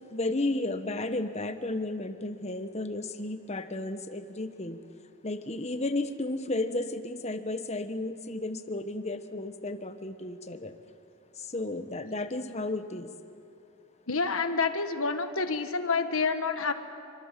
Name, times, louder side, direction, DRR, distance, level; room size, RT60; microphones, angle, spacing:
voice 1, 0.1-4.8 5.2-10.7 11.4-13.1, left 2 dB, 30° left, 9 dB, 1.2 m, -33 dB
voice 2, 14.1-16.7, left 4 dB, 80° left, 8 dB, 1.5 m, -28 dB
27.0 x 24.0 x 7.5 m, 2.5 s
head